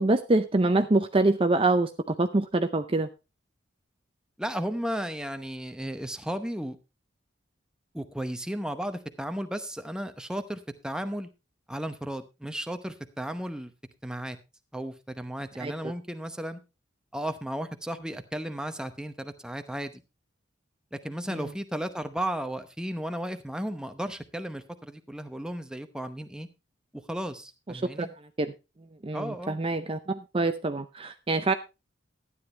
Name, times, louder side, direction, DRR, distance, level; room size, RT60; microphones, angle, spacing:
voice 1, 0.0-3.1 15.6-15.7 21.3-21.5 28.0-28.1 28.4-28.5 29.0-31.5, right 2 dB, 30° right, 0.6 m, -25 dB
voice 2, 4.4-6.8 7.9-11.3 11.7-13.7 14.0-14.4 14.7-16.6 17.1-20.0 20.9-26.5 26.9-28.1 29.1-29.6, right 1 dB, 5° right, 0.8 m, -34 dB
12.5 x 9.9 x 3.3 m
head